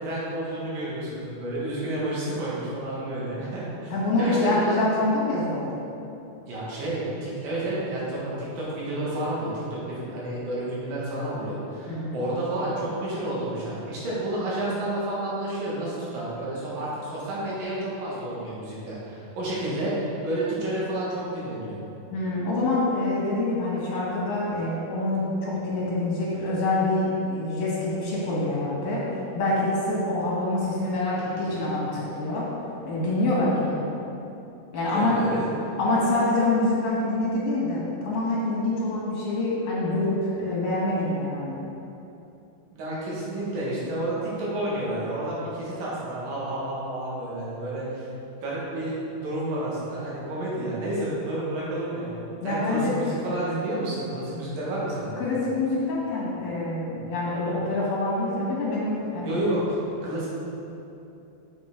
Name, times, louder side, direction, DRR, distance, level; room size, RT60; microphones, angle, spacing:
voice 1, 0.0-3.9 4.2-4.8 6.5-21.8 34.9-35.5 42.7-48.1 48.4-52.2 52.4-55.2 59.2-60.3, right 1 dB, 70° right, -7 dB, 3.3 m, -30 dB
voice 2, 3.9-5.7 11.9-12.2 22.1-29.0 29.3-32.5 32.8-33.8 34.7-35.2 35.8-41.6 52.4-53.0 55.2-59.4, left 2 dB, 75° left, -6 dB, 3.4 m, -26 dB
7.2 x 6.9 x 3.7 m, 2.8 s
omnidirectional pair, 4.1 m